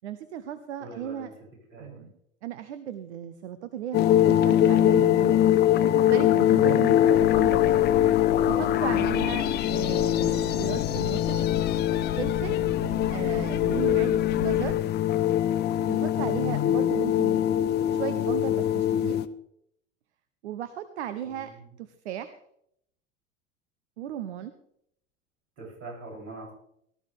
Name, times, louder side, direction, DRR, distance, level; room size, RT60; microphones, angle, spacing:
voice 1, 0.0-1.3 1.8-2.1 2.4-5.4 5.8-7.8 8.5-11.4 12.2-12.6 13.1-14.7 15.9-17.5 17.9-19.2 20.4-21.5 21.8-22.3 24.0-24.5, right 10 dB, 60° right, 12 dB, 1.0 m, -35 dB
voice 2, 0.8-1.3 1.7-2.1 6.9-7.2 21.2-21.8 25.6-26.5, right 2 dB, 40° right, -2 dB, 8.0 m, -44 dB
sound 1, 3.9-19.3, left 11 dB, 25° left, 0.7 m, -23 dB
sound 2, 7.1-14.7, left 8 dB, 65° left, 1.0 m, -35 dB
18.5 x 13.5 x 3.6 m, 0.72 s
figure-of-eight pair, 80°, 38 cm